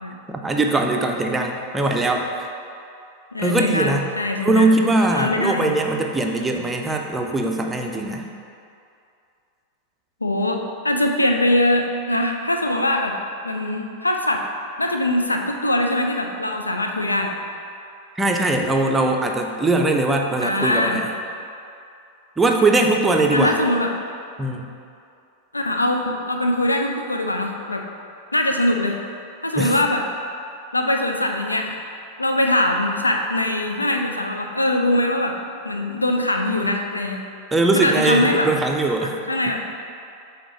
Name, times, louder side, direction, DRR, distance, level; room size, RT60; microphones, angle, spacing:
voice 1, 0.3-2.5 3.4-4.1 4.4-8.3 18.2-21.1 22.4-23.6 24.4-24.7 29.5-29.8 37.5-39.1 39.5-39.6, right 2 dB, 10° right, 2 dB, 0.6 m, -21 dB
voice 2, 3.3-4.8 5.1-5.7 10.2-13.2 13.4-14.4 14.8-17.3 20.4-21.0 23.3-23.9 25.5-27.8 28.3-29.0 29.4-30.0 30.7-31.8 32.2-35.4 35.6-37.2 37.7-38.5 39.3-39.7, left 1 dB, 80° left, 3 dB, 0.4 m, -22 dB
7.3 x 2.9 x 5.0 m, 2.5 s
figure-of-eight pair, 90°, 0 cm